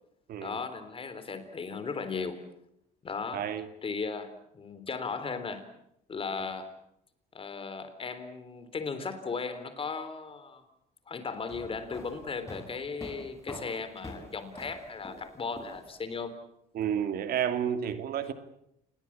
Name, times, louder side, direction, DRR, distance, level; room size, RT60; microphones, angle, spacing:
voice 1, 0.4-2.4 3.0-3.5 3.8-5.6 6.1-6.7 7.3-10.6 11.1-16.3, left 5 dB, 35° left, 11 dB, 3.7 m, -36 dB
voice 2, 3.3-3.7 16.7-18.3, right 9 dB, 65° right, 9 dB, 2.5 m, -30 dB
sound 1, 11.3-16.2, left 1 dB, 15° left, 6.9 m, -45 dB
29.0 x 20.5 x 7.5 m, 0.77 s
cardioid pair, 110°, 17 cm